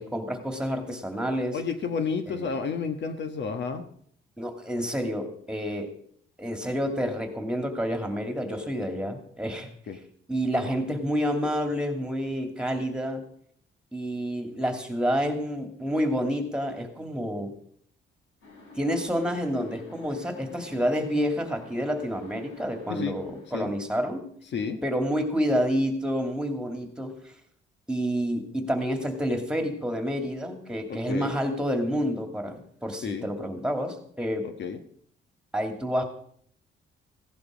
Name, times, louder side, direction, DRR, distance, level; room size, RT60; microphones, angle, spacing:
voice 1, 0.0-1.6 2.3-2.6 4.4-5.9 6.4-9.7 10.3-13.3 13.9-17.5 18.8-24.3 24.8-27.3 27.9-34.5 35.5-36.0, equal, 5° right, 5 dB, 2.7 m, -29 dB
voice 2, 1.5-3.8 9.9-10.0 22.9-23.1 23.5-23.7 24.5-24.8 30.9-31.3 33.0-33.3 34.6-34.8, left 5 dB, 65° left, 8 dB, 1.4 m, -31 dB
sound 1, 18.4-23.8, left 2 dB, 85° left, 5.9 m, -50 dB
16.0 x 11.0 x 5.2 m, 0.63 s
cardioid pair, 90°, 20 cm